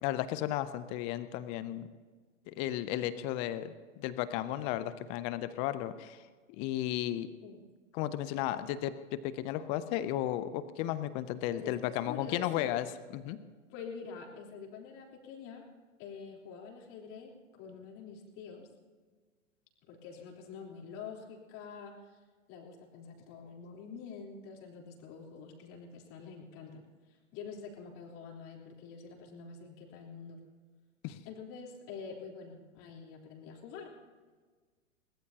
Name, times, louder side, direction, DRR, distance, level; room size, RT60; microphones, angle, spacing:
voice 1, 0.0-1.9 2.5-6.2 6.6-7.3 7.9-12.9 13.1-13.4 31.0-31.2, left 13 dB, 15° left, 13 dB, 0.4 m, -34 dB
voice 2, 11.5-12.8 13.7-15.6 16.0-18.7 19.9-22.2 22.5-26.8 27.3-30.4 31.3-33.9, left 5 dB, 35° left, 0 dB, 3.6 m, -46 dB
22.0 x 20.0 x 2.8 m, 1.4 s
figure-of-eight pair, 115°, 40 cm